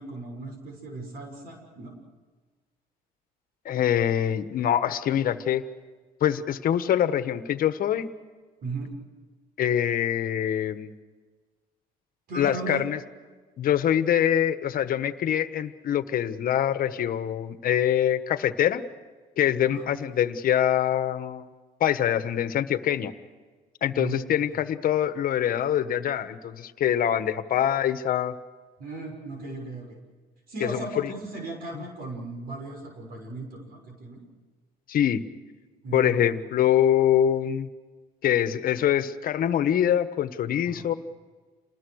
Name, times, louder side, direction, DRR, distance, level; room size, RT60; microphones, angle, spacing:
voice 1, 0.0-1.9 8.6-8.9 12.3-12.8 19.7-20.2 24.0-24.2 24.5-24.6 28.8-30.0 30.5-34.2 35.8-36.2 40.7-40.9, right 2 dB, 65° right, 2 dB, 6.5 m, -37 dB
voice 2, 3.6-5.6 6.2-8.1 9.6-10.9 12.3-13.0 13.6-18.8 19.4-21.5 21.8-23.1 23.8-28.3 30.6-31.1 31.7-31.8 34.9-35.2 35.9-37.7 38.2-40.9, left 10 dB, 60° left, 11 dB, 1.4 m, -24 dB
28.0 x 20.5 x 6.5 m, 1.4 s
cardioid pair, 110°, 17 cm